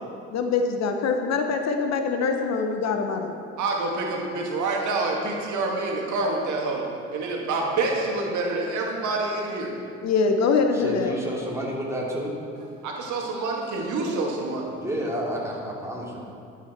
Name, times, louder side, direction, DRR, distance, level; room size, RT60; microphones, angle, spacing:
voice 1, 0.3-3.4 10.0-11.1, left 4 dB, 50° left, 5 dB, 1.0 m, -24 dB
voice 2, 3.6-6.9 7.1-9.7 12.8-14.7, right 3 dB, 55° right, -1 dB, 2.1 m, -27 dB
voice 3, 10.7-12.3 14.8-16.2, equal, 10° right, -4 dB, 3.0 m, -30 dB
11.5 x 8.6 x 4.4 m, 2.5 s
hypercardioid pair, 60°, 35 cm